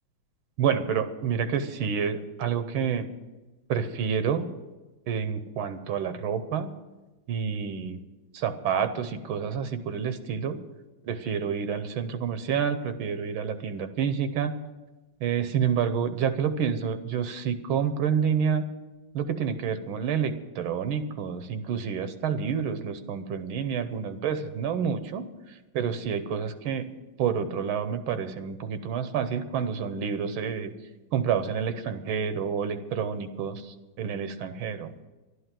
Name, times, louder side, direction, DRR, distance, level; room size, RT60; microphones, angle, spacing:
voice 1, 0.6-3.1 3.7-4.5 5.1-6.7 7.3-8.0 8.3-10.6 11.0-14.5 15.2-18.6 19.1-30.7 31.1-34.9, right 7 dB, 75° right, 10 dB, 1.6 m, -28 dB
11.5 x 11.5 x 7.5 m, 1.2 s
omnidirectional pair, 2.3 m